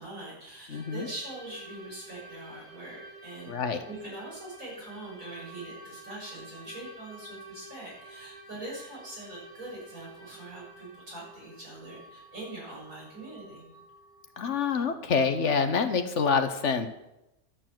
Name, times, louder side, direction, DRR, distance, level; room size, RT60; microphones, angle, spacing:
voice 1, 0.0-13.7, right 2 dB, 60° right, -5 dB, 6.6 m, -43 dB
voice 2, 0.7-1.1 3.5-3.8 14.4-16.9, left 5 dB, 55° left, 9 dB, 1.3 m, -26 dB
sound 1, 0.7-15.9, right 1 dB, 10° left, 3.9 m, -50 dB
12.0 x 6.8 x 7.7 m, 0.90 s
omnidirectional pair, 1.6 m